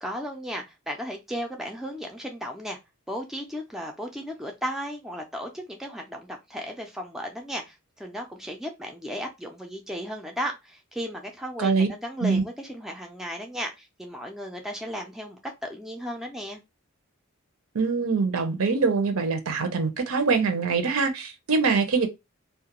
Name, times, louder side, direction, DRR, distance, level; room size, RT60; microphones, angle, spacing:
voice 1, 0.0-2.8 3.1-16.6, equal, ahead, 0.3 m, -35 dB
voice 2, 17.7-22.1, right 4 dB, 80° right, 0.6 m, -24 dB
2.3 x 2.1 x 2.8 m
head